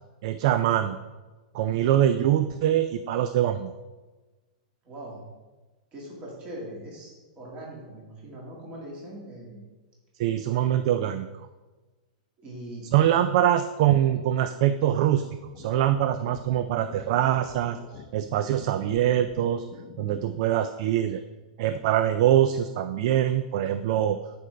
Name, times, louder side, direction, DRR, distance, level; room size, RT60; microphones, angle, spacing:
voice 1, 0.2-1.0 1.5-3.7 10.2-11.3 12.9-15.2 15.6-19.6 20.0-21.2 21.6-24.2, right 11 dB, 45° right, 10 dB, 0.3 m, -23 dB
voice 2, 1.6-2.0 4.8-5.2 5.9-9.6 12.4-13.2, right 1 dB, 25° right, -3 dB, 2.0 m, -41 dB
sound 1, 15.4-20.4, left 8 dB, 25° left, 0.5 m, -47 dB
11.5 x 5.2 x 3.3 m, 1.2 s
supercardioid pair, 160°, 4 cm